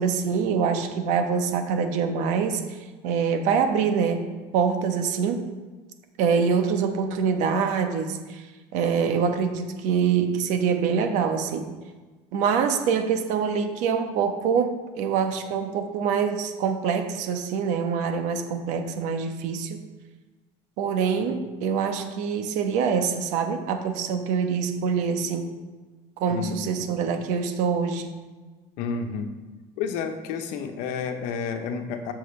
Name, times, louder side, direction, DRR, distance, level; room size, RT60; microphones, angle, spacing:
voice 1, 0.0-4.3 4.5-5.4 6.2-8.4 8.7-11.7 12.3-19.8 20.8-25.5 26.2-28.1, right 6 dB, 65° right, 6 dB, 1.2 m, -25 dB
voice 2, 26.3-26.8 28.8-29.3 29.8-32.1, left 5 dB, 70° left, 6 dB, 1.1 m, -30 dB
13.0 x 6.3 x 3.4 m, 1.3 s
cardioid pair, 140°, 13 cm